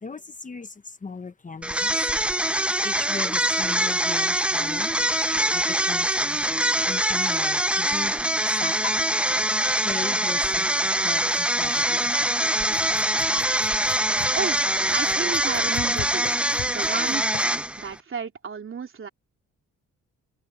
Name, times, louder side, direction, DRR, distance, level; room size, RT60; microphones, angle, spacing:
voice 1, 0.0-2.1 2.8-5.0 5.5-6.5 6.8-8.1 8.5-9.2 9.8-12.7, left 4 dB, 25° left, 1.2 m, -38 dB
sound 1, 1.6-17.9, right 1 dB, 5° right, 0.8 m, -24 dB
sound 2, 8.5-8.6 8.8-8.9 11.1-12.2 12.6-17.6, left 12 dB, 75° left, 4.5 m, -40 dB
voice 2, 14.9-19.1, right 6 dB, 45° right, 3.4 m, -33 dB
open air
cardioid pair, 90°, 30 cm